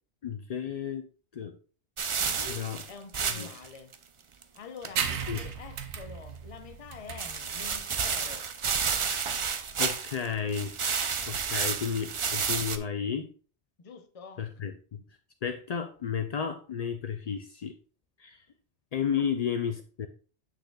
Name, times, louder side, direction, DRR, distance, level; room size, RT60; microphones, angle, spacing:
voice 1, 0.2-1.1 1.3-1.6 2.5-2.8 3.3-3.5 5.3-5.4 9.8-10.7 11.3-13.3 14.4-15.0 15.4-17.7 18.2-18.4 18.9-20.1, left 7 dB, 65° left, 0.4 m, -32 dB
sound 1, 2.0-3.7 3.9-4.0 4.4-4.5 4.8-4.9 7.2-10.3 10.5-12.8, right 6 dB, 50° right, 0.3 m, -31 dB
voice 2, 2.2-3.9 4.5-8.5 13.8-14.4, left 5 dB, 35° left, 0.7 m, -46 dB
sound 2, 5.0-12.1, right 7 dB, 75° right, 1.0 m, -38 dB
8.0 x 6.5 x 2.3 m
omnidirectional pair, 1.2 m